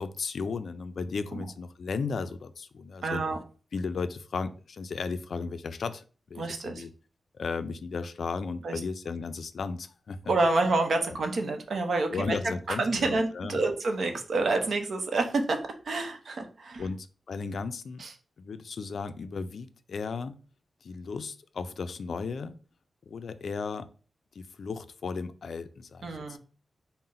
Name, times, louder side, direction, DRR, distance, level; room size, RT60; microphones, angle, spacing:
voice 1, 0.0-3.2 3.7-6.9 7.3-10.3 12.1-13.6 16.8-18.0 18.4-20.4 20.8-22.6 23.1-23.9 24.4-26.4, left 4 dB, 65° left, 11 dB, 0.3 m, -35 dB
voice 2, 3.0-3.4 6.4-6.8 8.6-8.8 10.3-16.8 18.0-18.1 26.0-26.4, right 3 dB, 60° right, 5 dB, 0.7 m, -28 dB
3.8 x 2.1 x 4.1 m, 0.38 s
wide cardioid pair, 130°, 0 cm